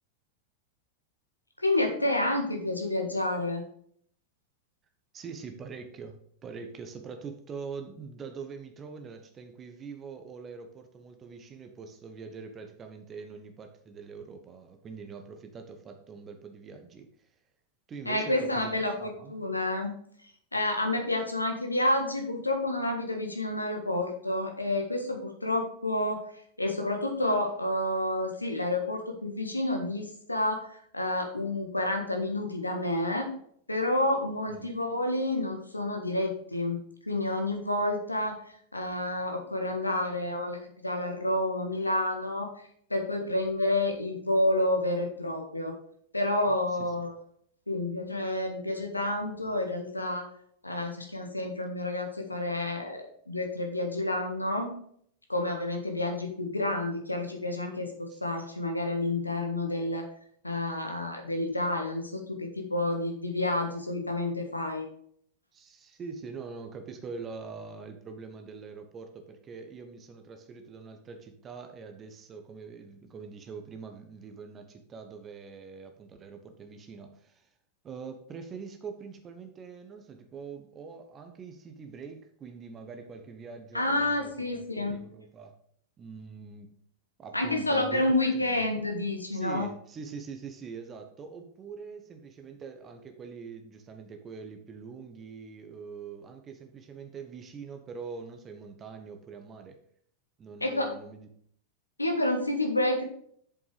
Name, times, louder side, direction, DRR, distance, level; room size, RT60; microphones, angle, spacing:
voice 1, 1.6-3.6 18.0-19.9 20.2-33.3 33.7-45.8 46.1-47.2 47.7-50.3 50.6-54.8 55.3-60.1 60.4-64.9 83.7-85.0 87.3-89.7 100.6-100.9 102.0-103.0, left 1 dB, 85° left, 3 dB, 1.6 m, -29 dB
voice 2, 5.1-17.3 17.9-19.4 34.5-34.7 58.1-58.2 65.5-77.5 77.8-85.5 86.0-86.7 87.2-88.2 88.5-88.6 89.3-99.8 100.4-101.3, right 5 dB, 25° right, 6 dB, 1.0 m, -44 dB
8.3 x 7.1 x 3.4 m, 0.62 s
figure-of-eight pair, 90°, 0 cm